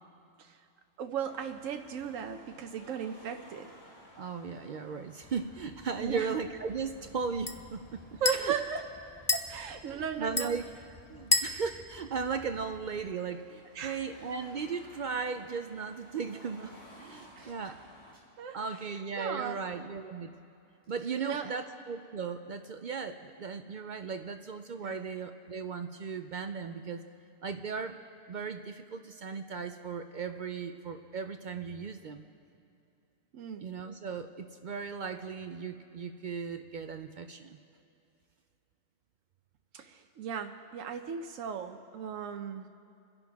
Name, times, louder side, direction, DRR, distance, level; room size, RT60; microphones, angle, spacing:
voice 1, 1.0-3.7 6.0-6.3 8.2-8.8 9.3-10.5 13.7-14.0 17.1-17.5 18.4-18.6 18.8-19.6 21.2-21.5 24.8-25.0 33.3-33.7 39.7-42.7, right 7 dB, 90° right, 6 dB, 1.1 m, -36 dB
Car passing by / Traffic noise roadway noise / Engine, 1.2-18.1, equal, 70° left, 2.8 m, -57 dB
voice 2, 4.2-8.5 9.9-10.6 11.1-17.8 18.5-20.3 20.9-27.0 27.4-28.0 28.3-32.3 33.6-37.6, right 5 dB, 60° right, 8 dB, 0.5 m, -37 dB
sound 1, 5.2-13.0, left 3 dB, 25° left, 0.5 m, -36 dB
Packing tape duct tape, 16.8-17.7 18.1-18.3 19.6-19.7 20.8-21.4 22.5-22.6, equal, 5° left, 4.1 m, -63 dB
29.5 x 11.0 x 3.5 m, 2.6 s
omnidirectional pair, 1.3 m